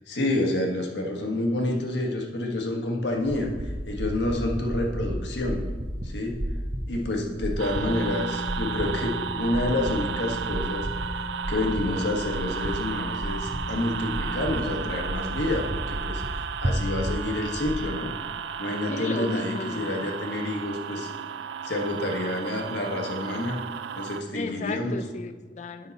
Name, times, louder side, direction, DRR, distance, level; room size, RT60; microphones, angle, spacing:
voice 1, 0.0-5.6 6.0-6.4 6.9-10.9 11.5-18.1 18.6-21.1 21.6-23.6 24.0-25.0, left 1 dB, 75° left, 1 dB, 1.4 m, -28 dB
sound 1, 3.1-17.8, equal, 30° right, 0.8 m, -33 dB
sound 2, 7.6-24.2, right 7 dB, 85° right, 0.4 m, -34 dB
Wind instrument woodwind instrument, 7.8-15.0, left 1 dB, 15° right, 1.2 m, -39 dB
voice 2, 18.9-20.1 24.3-25.9, left 3 dB, 40° left, 9 dB, 0.5 m, -34 dB
9.6 x 5.7 x 4.1 m, 1.3 s
head